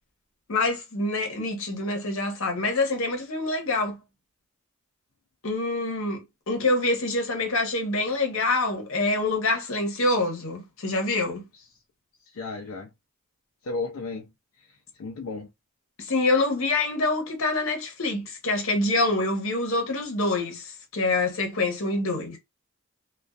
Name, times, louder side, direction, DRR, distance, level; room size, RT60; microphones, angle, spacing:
voice 1, 0.5-4.0 5.4-11.4 16.0-22.4, left 2 dB, 70° left, 0.9 m, -26 dB
voice 2, 12.3-12.9 13.6-14.3 14.6-15.5, left 3 dB, 90° left, 0.4 m, -34 dB
2.4 x 2.3 x 2.3 m
head